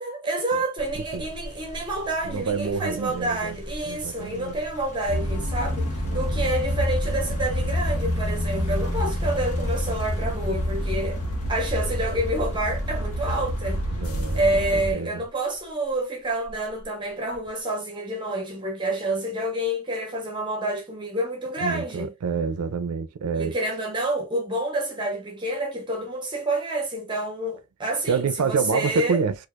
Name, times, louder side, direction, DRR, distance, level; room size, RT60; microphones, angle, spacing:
voice 1, 0.0-11.2 11.5-13.8 14.3-22.1 23.4-29.2, right 1 dB, 20° right, 0.7 m, -28 dB
sound 1, 0.8-15.8 16.4-17.6, equal, 35° left, 1.1 m, -42 dB
voice 2, 0.9-1.3 2.2-3.6 3.8-4.6 6.0-6.5 13.9-15.2 21.6-23.6 28.1-29.3, right 5 dB, 85° right, 0.4 m, -28 dB
sound 2, 5.1-14.9, equal, 85° left, 1.1 m, -27 dB
4.4 x 2.5 x 2.4 m
head